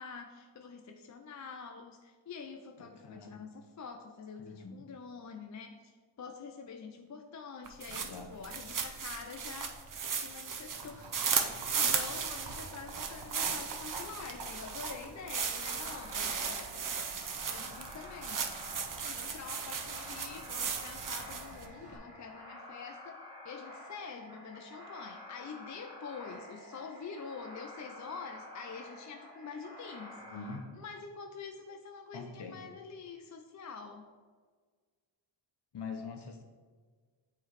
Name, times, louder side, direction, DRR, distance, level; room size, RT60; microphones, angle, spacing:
voice 1, 0.0-9.8 10.2-11.1 11.5-16.9 17.5-18.4 19.0-30.2 30.7-34.1, left 5 dB, 40° left, 4 dB, 0.4 m, -46 dB
voice 2, 2.8-3.4 4.4-4.8 7.9-8.3 30.2-30.7 32.1-32.6 35.7-36.4, left 4 dB, 55° left, 5 dB, 0.9 m, -44 dB
sound 1, 7.7-21.6, right 6 dB, 40° right, 0.6 m, -36 dB
Livestock farm animals working animals, 10.7-22.0, right 3 dB, 60° right, 1.0 m, -50 dB
sound 2, 15.5-30.6, left 1 dB, 10° right, 1.9 m, -50 dB
8.6 x 3.2 x 4.1 m, 1.5 s
wide cardioid pair, 95°, 48 cm